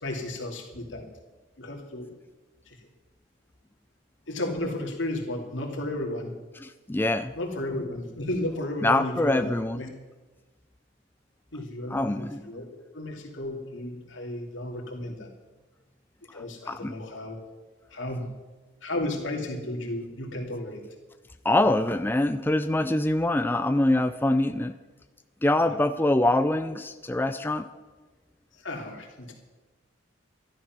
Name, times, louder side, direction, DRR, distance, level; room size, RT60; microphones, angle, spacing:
voice 1, 0.0-1.0 1.6-2.1 2.7-2.8 4.3-6.3 7.4-9.9 11.5-15.3 16.3-17.4 17.9-18.2 18.8-20.8 25.6-25.8 28.6-29.3, left 1 dB, 85° left, 0 dB, 2.7 m, -33 dB
voice 2, 6.6-7.3 8.8-9.9 11.9-12.5 16.7-16.9 21.4-24.7 25.4-27.7, left 1 dB, 10° left, 9 dB, 0.4 m, -24 dB
13.0 x 11.5 x 6.1 m, 1.2 s
head